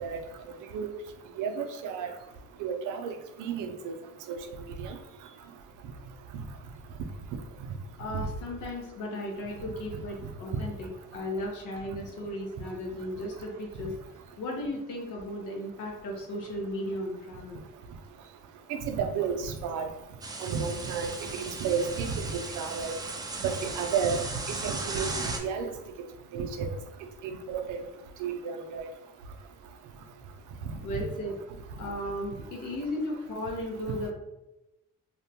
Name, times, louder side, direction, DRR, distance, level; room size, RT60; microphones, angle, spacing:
voice 1, 1.4-2.1 2.6-3.1 3.4-3.9 4.3-4.4 4.8-5.0 18.7-19.9 20.4-23.0 23.4-25.7 26.3-26.7 27.2-27.8 28.2-28.9 30.9-31.0, right 6 dB, 85° right, 6 dB, 0.5 m, -32 dB
voice 2, 8.0-13.9 14.4-17.6 30.8-31.4 31.8-34.1, left 1 dB, 85° left, 0 dB, 0.8 m, -35 dB
sound 1, 20.2-25.4, right 3 dB, 15° right, 0.3 m, -37 dB
2.6 x 2.1 x 2.7 m, 0.94 s
cardioid pair, 90°, 30 cm